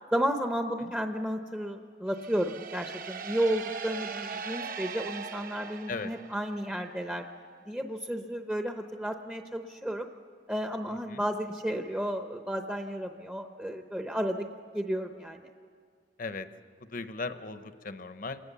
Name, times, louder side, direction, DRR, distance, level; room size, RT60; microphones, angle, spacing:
voice 1, 0.1-7.3 7.7-10.1 10.5-15.5, equal, 5° right, 5 dB, 0.7 m, -32 dB
sound 1, 2.1-6.8, right 5 dB, 50° right, 0.9 m, -40 dB
voice 2, 16.9-18.4, left 3 dB, 50° left, 11 dB, 0.9 m, -37 dB
27.5 x 19.5 x 7.0 m, 2.1 s
head